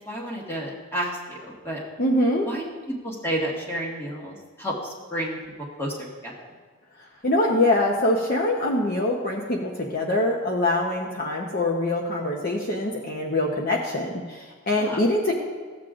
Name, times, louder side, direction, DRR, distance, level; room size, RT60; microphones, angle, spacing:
voice 1, 0.1-1.8 2.4-5.4 5.8-6.0 6.2-6.3 14.8-15.0, right 1 dB, 10° left, -4 dB, 1.5 m, -31 dB
voice 2, 2.0-2.5 7.2-15.3, left 1 dB, 45° left, 0 dB, 0.8 m, -24 dB
15.0 x 7.7 x 2.5 m, 1.5 s
head